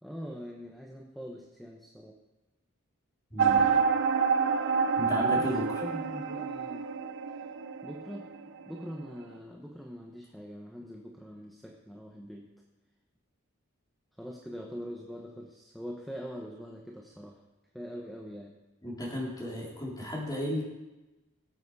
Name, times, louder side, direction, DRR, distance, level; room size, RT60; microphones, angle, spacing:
voice 1, 0.0-2.2 5.3-6.8 7.8-12.5 14.2-17.4 17.7-18.5, equal, ahead, -1 dB, 1.1 m, -43 dB
voice 2, 3.3-3.7 5.0-5.6 18.8-20.6, left 1 dB, 20° left, -4 dB, 3.7 m, -34 dB
sound 1, 3.4-8.9, right 5 dB, 60° right, 0.7 m, -28 dB
20.5 x 7.9 x 4.8 m, 1.1 s
head